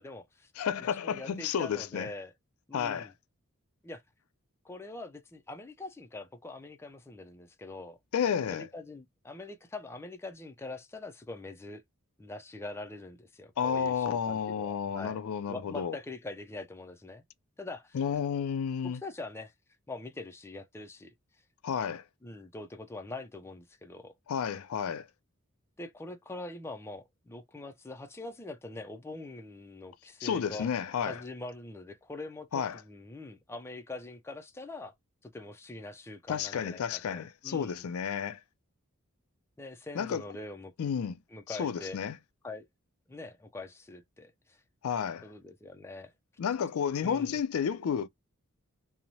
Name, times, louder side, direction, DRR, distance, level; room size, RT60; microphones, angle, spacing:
voice 1, 0.0-0.5 0.8-2.3 2.7-3.1 3.8-4.0 4.6-8.0 8.5-11.8 12.2-15.2 15.5-17.2 17.6-18.0 18.8-19.5 19.9-21.1 22.2-24.1 25.8-30.7 31.0-34.9 35.2-37.8 39.6-40.7 41.3-42.0 42.4-42.7 43.1-44.6 45.2-46.1 47.0-47.3, left 2 dB, 10° left, 0.4 m, -43 dB
voice 2, 0.6-2.1 2.7-3.1 8.1-8.7 13.6-16.0 17.9-19.0 21.6-22.0 24.3-25.1 30.2-31.2 32.5-32.8 36.3-38.4 40.0-40.2 40.8-41.2 41.5-42.1 44.8-45.2 46.4-48.1, left 7 dB, 85° left, 0.4 m, -31 dB
3.0 x 2.0 x 2.6 m
head